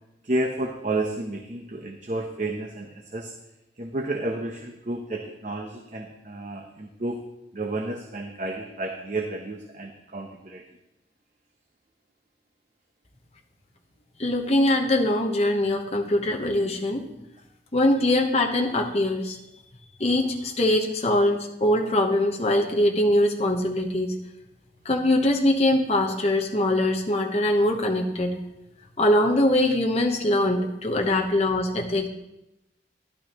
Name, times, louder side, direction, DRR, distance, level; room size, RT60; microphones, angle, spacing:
voice 1, 0.2-3.3 3.8-7.2 7.5-10.6, right 2 dB, 40° right, 2 dB, 0.8 m, -31 dB
voice 2, 14.2-17.1 17.7-19.4 20.0-24.1 24.8-28.3 29.0-32.1, left 1 dB, 35° left, 1 dB, 1.0 m, -22 dB
12.5 x 11.5 x 3.0 m, 0.90 s
head